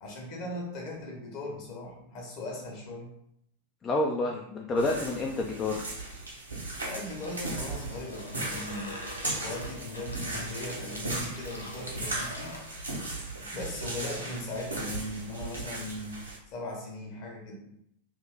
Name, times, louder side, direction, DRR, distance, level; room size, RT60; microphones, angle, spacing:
voice 1, 0.0-3.1 6.8-9.0 9.4-12.6 13.4-16.2 16.5-17.6, left 1 dB, 45° left, -1 dB, 1.2 m, -38 dB
voice 2, 3.8-5.9, left 2 dB, 25° left, 0 dB, 0.4 m, -29 dB
sound 1, 4.8-16.4, right 2 dB, 80° right, 1.0 m, -37 dB
Water tap faucet / Sink (filling or washing), 7.2-12.7, left 1 dB, 75° left, 0.6 m, -44 dB
2.8 x 2.6 x 3.7 m, 0.76 s
figure-of-eight pair, 90°, 0 cm